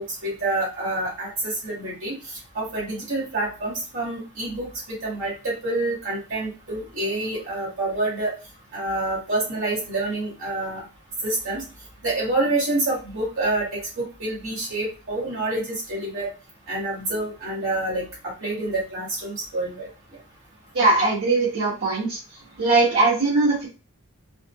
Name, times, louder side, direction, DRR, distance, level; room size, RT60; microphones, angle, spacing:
voice 1, 0.0-2.2 2.5-4.7 5.0-8.3 8.7-10.8 11.2-11.6 12.0-16.3 16.7-19.9 21.0-21.1, right 2 dB, 60° right, -5 dB, 1.8 m, -27 dB
voice 2, 20.7-22.2 22.6-23.7, right 3 dB, 75° right, -8 dB, 1.4 m, -20 dB
4.1 x 2.1 x 3.1 m, 0.33 s
head